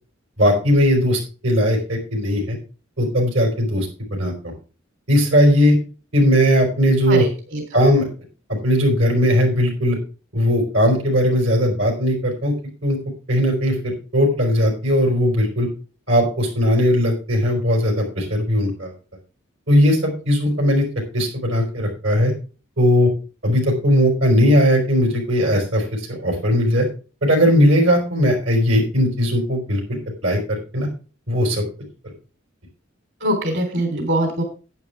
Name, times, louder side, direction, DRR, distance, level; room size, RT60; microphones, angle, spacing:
voice 1, 0.4-2.6 3.0-4.5 5.1-5.8 6.1-7.2 7.7-8.1 8.5-10.0 10.3-12.5 12.8-13.0 13.3-15.7 16.1-18.9 19.7-20.9 21.1-22.3 22.8-23.1 23.4-26.9 27.2-30.9 31.3-31.6, equal, 80° right, 1 dB, 4.8 m, -18 dB
voice 2, 7.1-7.6 33.2-34.4, right 1 dB, 65° right, 4 dB, 3.7 m, -22 dB
11.0 x 9.7 x 3.5 m, 0.34 s
head